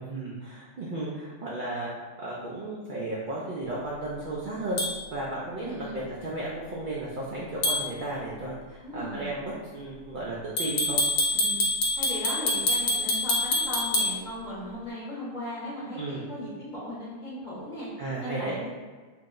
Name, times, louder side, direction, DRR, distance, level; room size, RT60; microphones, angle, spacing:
voice 1, 0.0-1.9 2.2-4.8 5.1-11.0 15.9-16.3 18.0-18.7, right 2 dB, 60° right, -6 dB, 0.5 m, -34 dB
sound 1, 4.8-4.9 7.6-7.8 10.6-14.1, left 1 dB, 75° left, 1.0 m, -25 dB
voice 2, 5.6-6.0 8.8-9.3 11.3-11.6 12.0-17.9 18.2-18.7, equal, 40° left, -8 dB, 1.1 m, -37 dB
2.8 x 2.0 x 3.6 m, 1.4 s
omnidirectional pair, 1.3 m